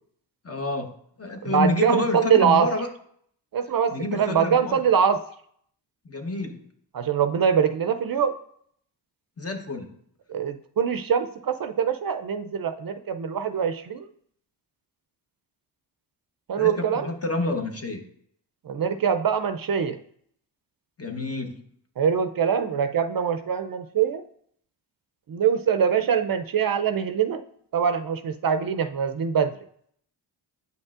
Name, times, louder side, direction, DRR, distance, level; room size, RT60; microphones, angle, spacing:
voice 1, 0.4-2.9 3.9-4.8 6.0-6.6 9.4-10.0 16.6-18.0 21.0-21.6, left 2 dB, 30° left, 5 dB, 1.0 m, -29 dB
voice 2, 1.4-2.7 3.5-5.2 6.9-8.3 10.3-14.1 16.5-17.1 18.7-20.0 22.0-24.2 25.3-27.4 27.7-29.6, right 7 dB, 50° right, 9 dB, 0.5 m, -23 dB
7.9 x 5.2 x 2.4 m, 0.65 s
cardioid pair, 55°, 46 cm